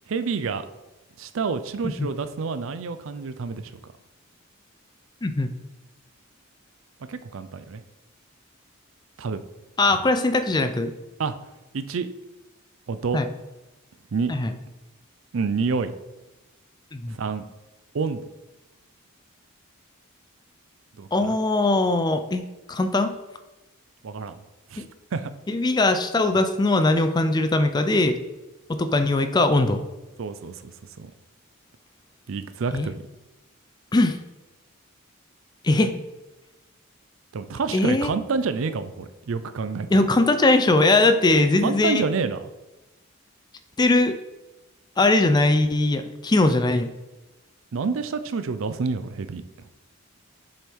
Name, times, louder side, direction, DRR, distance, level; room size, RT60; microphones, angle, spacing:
voice 1, 0.1-0.6 1.2-3.9 7.1-7.8 9.2-9.4 11.2-11.4 11.7-12.1 12.9-13.2 14.1-14.3 15.3-15.9 17.1-17.4 17.9-18.2 21.0-21.4 24.0-24.4 24.7-24.8 25.1-25.3 30.2-31.1 32.3-33.0 37.3-39.9 41.6-42.5 47.7-49.4, right 4 dB, 65° right, 11 dB, 0.4 m, -28 dB
voice 2, 9.8-10.9 13.1-13.3 14.3-14.5 16.9-17.2 21.1-23.1 24.8-24.9 25.5-28.2 28.7-29.8 32.7-32.9 33.9-34.2 35.6-35.9 37.7-38.1 39.9-42.0 43.8-44.2 45.0-46.9, left 2 dB, 20° left, 9 dB, 0.4 m, -20 dB
7.5 x 4.5 x 3.5 m, 1.1 s
head